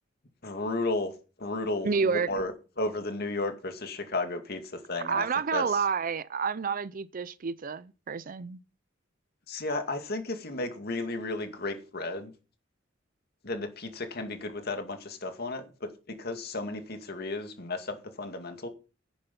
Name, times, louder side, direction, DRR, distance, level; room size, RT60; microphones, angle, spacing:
voice 1, 0.4-1.1 1.4-2.5 2.8-5.3 5.5-5.6 9.5-12.3 13.4-18.7, left 2 dB, 55° left, 2.2 m, -33 dB
voice 2, 1.8-2.3 5.0-8.6, right 5 dB, 45° right, 0.5 m, -29 dB
10.0 x 10.0 x 5.4 m
head